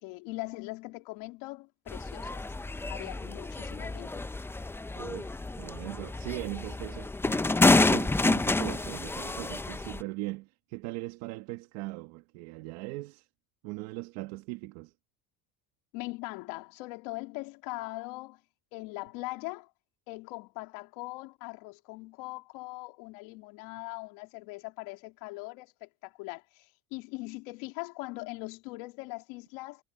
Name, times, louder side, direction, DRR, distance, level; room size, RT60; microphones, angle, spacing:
voice 1, 0.0-2.5 2.9-4.3 15.9-18.4 18.7-19.7 20.1-29.8, left 23 dB, 85° left, 2.7 m, -41 dB
sound 1, 1.9-10.0, left 2 dB, 5° left, 0.4 m, -28 dB
voice 2, 5.0-13.3 13.6-14.9, right 22 dB, 85° right, 1.8 m, -40 dB
cardioid pair, 110°, 44 cm